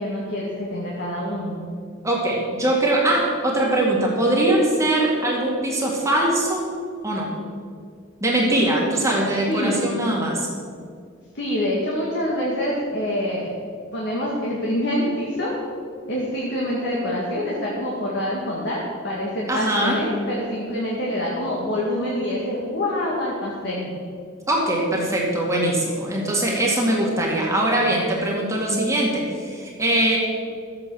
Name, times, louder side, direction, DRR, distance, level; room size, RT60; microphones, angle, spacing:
voice 1, 0.0-1.6 9.5-9.8 11.3-13.5 13.9-15.6 16.1-23.9, left 1 dB, 60° left, -4 dB, 2.3 m, -26 dB
voice 2, 2.0-6.7 7.0-7.3 8.2-10.5 19.5-20.0 24.5-30.2, right 1 dB, 15° right, -3 dB, 2.0 m, -21 dB
13.5 x 8.7 x 6.4 m, 2.2 s
head